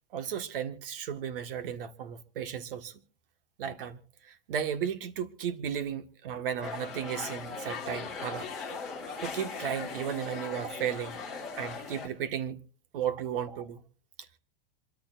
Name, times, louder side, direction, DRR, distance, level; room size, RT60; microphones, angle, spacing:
voice 1, 0.1-3.0 3.6-8.5 9.2-11.2 11.6-12.6 12.9-13.8, right 8 dB, 65° right, 1.6 m, -34 dB
sound 1, 6.6-12.1, left 5 dB, ahead, 3.2 m, -39 dB
27.0 x 13.5 x 2.5 m
supercardioid pair, 180°, 29 cm